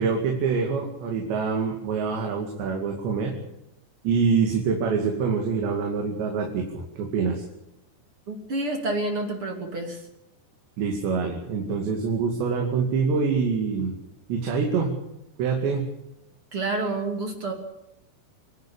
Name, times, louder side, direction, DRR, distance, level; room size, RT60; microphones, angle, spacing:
voice 1, 0.0-3.4 4.0-7.4 10.8-14.0 14.3-14.9 15.4-15.8, right 5 dB, 85° right, 2 dB, 4.7 m, -25 dB
voice 2, 8.3-10.0 16.5-17.5, right 2 dB, 35° right, 3 dB, 3.3 m, -28 dB
25.5 x 12.0 x 8.7 m, 0.88 s
omnidirectional pair, 4.9 m